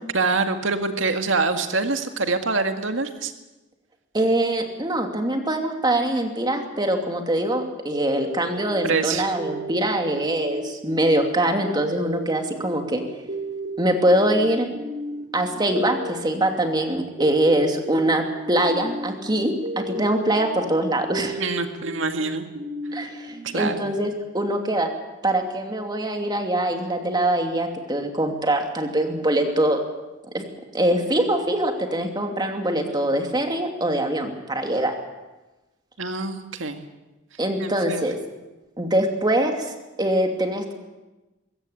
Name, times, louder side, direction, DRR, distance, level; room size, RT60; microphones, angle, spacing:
voice 1, 0.1-3.3 8.8-9.2 21.4-22.5 23.4-23.8 36.0-36.8 37.6-38.0, right 3 dB, 90° right, 6 dB, 1.9 m, -25 dB
voice 2, 4.1-13.0 13.8-14.7 15.3-21.4 22.9-24.9 25.2-29.8 30.3-30.4 30.7-34.9 37.4-38.2 38.8-40.7, right 1 dB, 20° right, 3 dB, 2.7 m, -23 dB
sound 1, 7.9-24.3, right 2 dB, 60° right, 3.2 m, -35 dB
21.5 x 17.0 x 8.5 m, 1.1 s
head